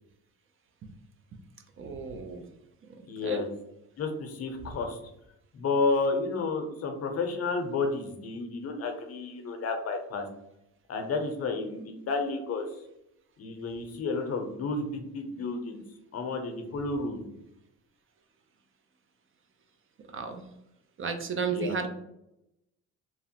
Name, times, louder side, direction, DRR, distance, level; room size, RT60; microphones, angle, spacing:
voice 1, 1.8-2.5 3.2-3.4 20.1-20.4 21.0-21.9, right 5 dB, 45° right, 6 dB, 0.4 m, -33 dB
voice 2, 3.1-3.5 4.0-5.0 5.5-10.2 10.9-12.7 13.4-15.8 16.1-17.4 21.5-21.8, left 3 dB, 55° left, 5 dB, 0.6 m, -31 dB
2.8 x 2.0 x 2.7 m, 0.84 s
cardioid pair, 90°, 30 cm